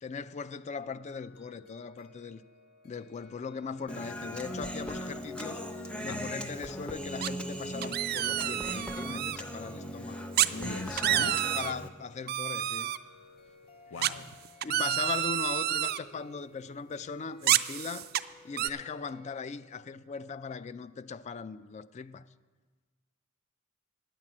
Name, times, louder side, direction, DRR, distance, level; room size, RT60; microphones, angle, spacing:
voice 1, 0.0-2.4 2.8-5.6 6.0-10.3 11.1-12.9 14.0-14.3 14.6-18.1 18.4-22.2, left 5 dB, 35° left, 0.3 m, -39 dB
sound 1, 0.8-20.0, left 3 dB, 50° left, 1.2 m, -57 dB
Human voice, 3.9-11.9, equal, 5° left, 0.7 m, -38 dB
sound 2, 7.2-7.5 7.8-9.4 10.4-10.5 10.8-11.7 12.3-13.0 14.0-16.0 17.4-18.2 18.6-18.7, right 13 dB, 50° right, 0.3 m, -29 dB
voice 2, 10.5-11.4 13.9-14.3, left 4 dB, 75° left, 0.7 m, -39 dB
9.8 x 7.4 x 8.6 m
head